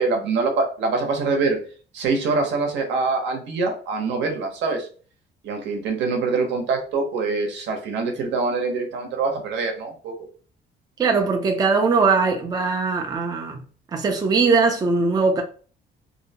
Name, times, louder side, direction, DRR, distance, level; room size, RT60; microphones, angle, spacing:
voice 1, 0.0-1.6 1.9-4.9 5.4-10.1, right 4 dB, 80° right, 0.8 m, -24 dB
voice 2, 11.0-13.6 13.9-15.4, right 4 dB, 20° right, 0.4 m, -20 dB
2.7 x 2.1 x 2.7 m
cardioid pair, 125°, 18 cm